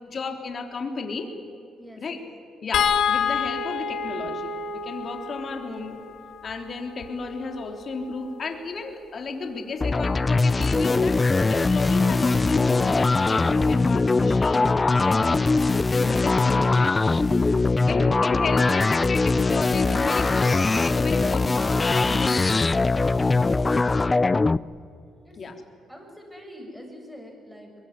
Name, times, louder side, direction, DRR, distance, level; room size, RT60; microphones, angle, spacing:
voice 1, 0.1-1.3 2.0-2.2 2.6-6.0 6.4-11.2 11.5-16.9 17.9-21.6 21.8-22.7 25.4-25.5, left 4 dB, 45° left, 4 dB, 3.6 m, -33 dB
voice 2, 1.8-2.3 25.2-25.4 25.9-27.8, equal, 5° right, 2 dB, 7.3 m, -45 dB
sound 1, 2.7-9.1 10.6-10.8 11.1-11.3, left 6 dB, 70° left, 2.0 m, -29 dB
sound 2, 9.8-24.6, left 3 dB, 25° left, 0.5 m, -21 dB
23.5 x 22.0 x 9.8 m, 2.5 s
cardioid pair, 90°, 0 cm